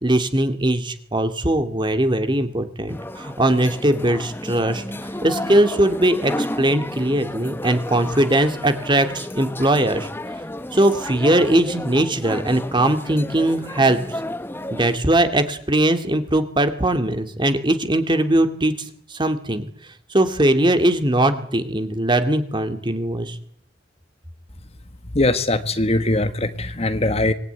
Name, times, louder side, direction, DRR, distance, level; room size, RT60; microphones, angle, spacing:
voice 1, 0.0-4.8 5.2-10.1 10.7-14.2 14.7-18.7 19.1-19.7 20.1-23.4, right 1 dB, 25° right, 8 dB, 2.3 m, -20 dB
sound 1, 2.9-15.0, left 1 dB, 10° left, 1.2 m, -32 dB
voice 2, 25.1-27.3, left 2 dB, 35° left, 10 dB, 1.4 m, -21 dB
25.0 x 20.0 x 9.5 m, 0.66 s
head